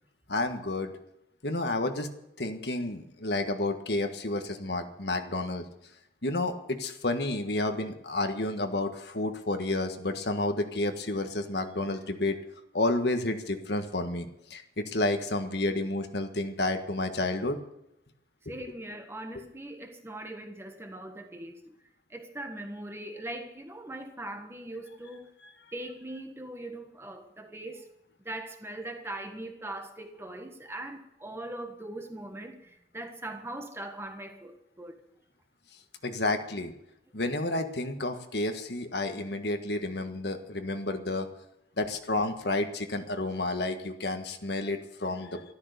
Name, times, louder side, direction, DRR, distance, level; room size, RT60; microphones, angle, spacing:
voice 1, 0.3-0.9 1.4-2.1 2.4-5.6 6.2-12.4 12.7-17.6 36.0-36.7 37.1-41.3 41.8-45.4, left 2 dB, 60° left, 1.6 m, -30 dB
voice 2, 18.5-21.6 22.1-25.3 25.7-27.8 28.2-35.0, right 1 dB, 15° right, 1.4 m, -40 dB
13.5 x 13.0 x 6.8 m
head